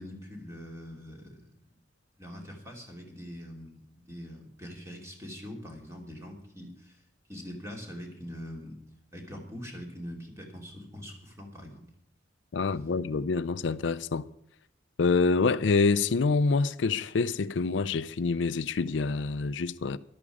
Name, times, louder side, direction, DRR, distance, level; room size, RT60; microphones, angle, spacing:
voice 1, 0.0-1.7 2.2-7.0 7.3-8.8 9.1-11.8, equal, 15° right, 2.8 m, -43 dB
voice 2, 12.5-14.3 15.0-20.0, left 4 dB, 75° left, 0.5 m, -26 dB
13.5 x 12.0 x 4.9 m
head